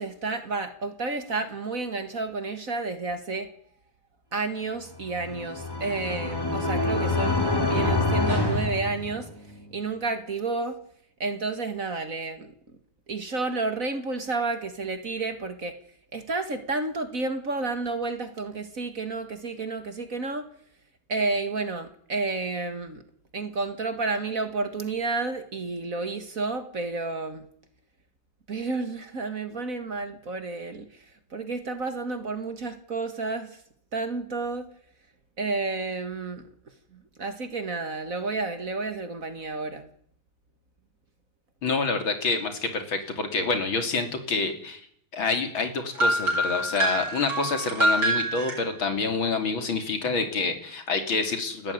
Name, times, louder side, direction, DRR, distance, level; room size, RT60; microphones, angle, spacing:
voice 1, 0.0-3.5 4.3-9.3 9.7-10.8 11.2-12.5 13.1-15.8 16.1-20.5 21.1-23.0 23.3-27.5 28.5-30.9 31.3-33.5 33.9-34.7 35.4-36.5 36.9-39.9, right 3 dB, 40° right, 9 dB, 2.1 m, -31 dB
sound 1, 5.0-9.6, left 2 dB, 10° left, 3.3 m, -26 dB
voice 2, 41.6-44.8 45.1-51.7, left 4 dB, 70° left, 6 dB, 3.7 m, -27 dB
sound 2, 45.9-48.6, right 1 dB, 90° right, 7.2 m, -25 dB
29.0 x 14.5 x 9.6 m, 0.67 s
omnidirectional pair, 2.3 m